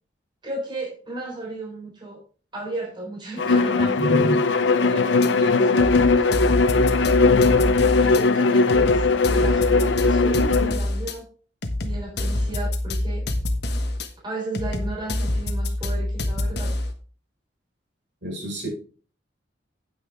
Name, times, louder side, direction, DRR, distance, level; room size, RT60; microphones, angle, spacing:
voice 1, 0.4-2.2 2.5-4.0 4.7-6.4 8.0-11.2 11.8-13.2 14.2-16.7, right 2 dB, 25° right, -2 dB, 3.9 m, -34 dB
Bowed string instrument, 3.4-10.8, left 3 dB, 90° left, 0.7 m, -19 dB
voice 2, 4.0-4.4 18.2-18.7, equal, 75° right, -1 dB, 5.3 m, -26 dB
sound 1, 5.2-5.3 5.8-8.2 8.7-11.1 11.6-14.1 14.5-16.9, left 1 dB, 60° left, 1.2 m, -26 dB
9.4 x 9.0 x 3.6 m, 0.40 s
head